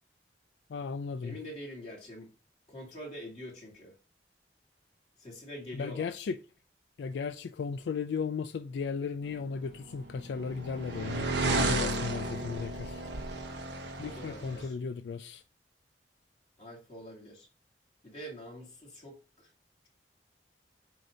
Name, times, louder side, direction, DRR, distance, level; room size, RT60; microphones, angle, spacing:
voice 1, 0.7-1.4 5.7-6.4 7.0-13.0 14.0-15.4, left 5 dB, 75° left, 0.3 m, -35 dB
voice 2, 1.2-2.3 2.7-3.9 5.2-6.1 14.0-14.8 16.6-17.5 18.0-19.5, equal, 35° left, 2.4 m, -45 dB
sound 1, 9.7-14.7, right 2 dB, 80° right, 0.9 m, -33 dB
7.6 x 2.7 x 5.0 m
head